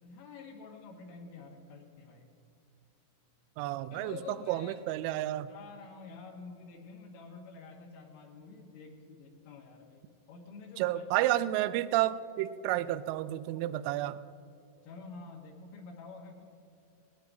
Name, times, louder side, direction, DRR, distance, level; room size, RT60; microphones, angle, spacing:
voice 1, 0.0-2.4 3.9-4.8 5.5-10.0 10.3-11.0 14.8-16.4, left 4 dB, 75° left, -1 dB, 3.7 m, -48 dB
voice 2, 3.6-4.2 4.5-5.5 10.8-14.2, right 14 dB, 85° right, 14 dB, 2.9 m, -31 dB
20.0 x 17.0 x 2.6 m, 2.4 s
omnidirectional pair, 5.9 m